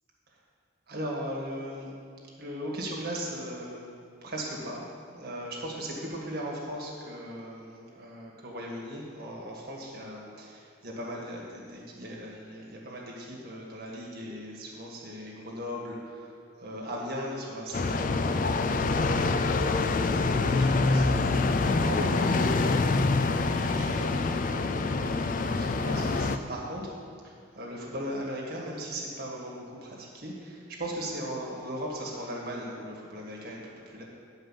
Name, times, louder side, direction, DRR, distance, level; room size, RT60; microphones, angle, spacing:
voice 1, 0.9-1.9 2.4-3.9 4.2-4.8 5.1-26.9 27.2-34.0, equal, 50° right, -3 dB, 2.0 m, -38 dB
sound 1, 17.7-26.4, left 3 dB, 40° left, 0.4 m, -26 dB
10.0 x 5.3 x 7.5 m, 2.5 s
head